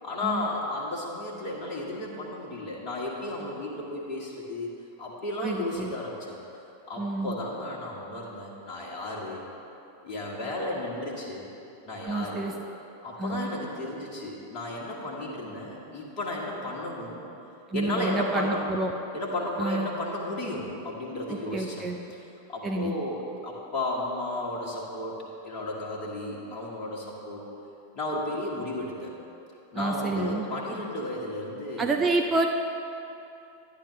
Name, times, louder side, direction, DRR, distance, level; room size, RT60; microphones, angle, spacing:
voice 1, 0.0-4.7 5.0-6.4 6.9-9.4 10.0-11.5 11.8-12.5 13.0-17.2 17.7-18.7 19.1-21.9 22.5-25.2 25.4-27.4 27.9-29.1 29.7-32.0, left 2 dB, 35° left, -4 dB, 1.5 m, -33 dB
voice 2, 5.4-5.9 7.0-7.4 12.0-12.5 13.2-13.5 17.7-18.9 19.6-19.9 21.3-22.0 22.6-22.9 29.8-30.5 31.8-32.5, right 3 dB, 20° right, 3 dB, 0.5 m, -28 dB
10.5 x 9.8 x 3.2 m, 2.8 s
figure-of-eight pair, 90°, 0 cm